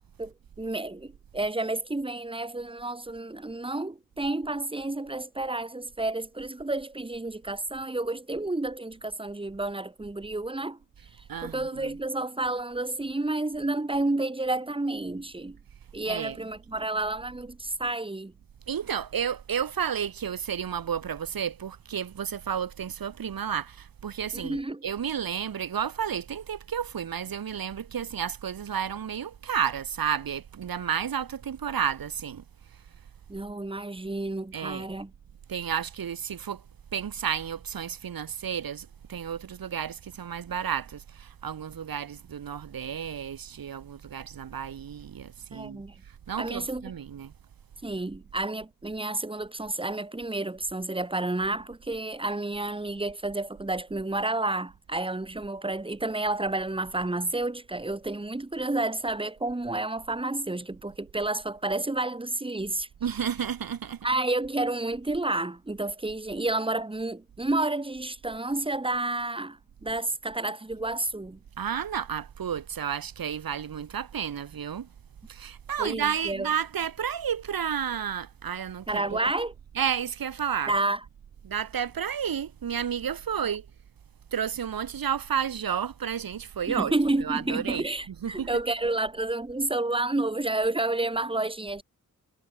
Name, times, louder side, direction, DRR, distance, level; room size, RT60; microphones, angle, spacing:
voice 1, 0.2-10.8 11.4-15.6 15.9-18.3 24.3-24.8 33.3-35.1 45.5-45.9 46.4-46.9 47.8-62.9 64.0-71.4 75.8-76.5 78.9-79.5 80.7-81.0 86.7-91.8, right 2 dB, 15° right, 1.3 m, -30 dB
voice 2, 11.3-11.9 16.0-16.4 18.7-32.4 32.7-32.8 34.5-34.9 35.5-36.6 36.9-47.3 63.0-64.1 71.6-74.9 75.3-79.3 79.7-80.7 81.4-83.7 84.3-86.9 87.2-88.5, right 8 dB, 70° right, 1.5 m, -32 dB
cardioid pair, 40°, 36 cm